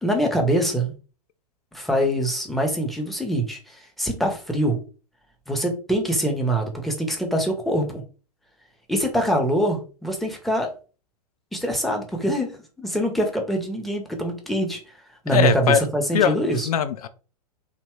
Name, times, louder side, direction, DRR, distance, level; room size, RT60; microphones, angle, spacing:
voice 1, 0.0-0.9 1.7-4.8 5.5-8.0 8.9-10.7 11.5-14.8 15.2-16.7, right 1 dB, ahead, 3 dB, 0.6 m, -24 dB
voice 2, 15.3-15.9 16.1-16.4 16.7-17.1, left 9 dB, 65° left, 11 dB, 0.4 m, -20 dB
2.8 x 2.2 x 3.0 m, 0.36 s
figure-of-eight pair, 105°, 21 cm